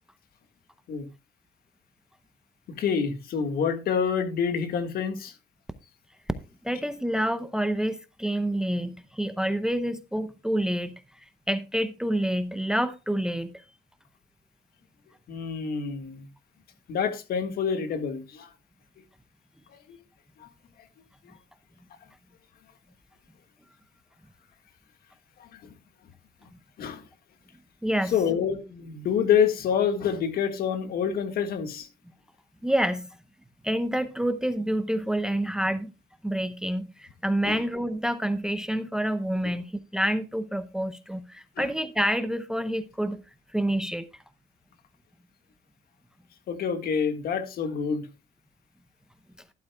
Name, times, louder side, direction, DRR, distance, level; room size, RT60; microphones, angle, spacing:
voice 1, 2.8-5.3 15.3-16.3 16.9-18.5 19.7-20.0 20.4-20.5 26.8-27.0 28.1-31.9 37.4-37.6 39.4-39.5 41.6-41.7 46.5-48.1, left 7 dB, 65° left, 1.7 m, -27 dB
voice 2, 6.6-10.9 11.5-13.6 27.8-28.1 32.6-33.1 33.6-35.9 36.2-43.2 43.5-44.1, right 1 dB, 5° right, 0.7 m, -28 dB
12.0 x 11.5 x 2.2 m
cardioid pair, 110°, 17 cm